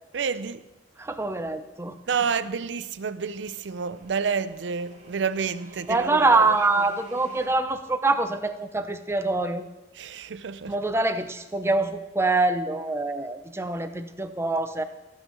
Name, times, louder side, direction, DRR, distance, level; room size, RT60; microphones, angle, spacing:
voice 1, 0.1-0.6 2.1-6.4 10.0-10.8, right 6 dB, 85° right, 0.5 m, -29 dB
voice 2, 1.0-2.0 5.9-9.6 10.7-14.8, right 3 dB, 15° right, 0.7 m, -25 dB
sound 1, 2.8-7.5, equal, 40° right, 2.5 m, -49 dB
15.0 x 5.7 x 7.4 m
head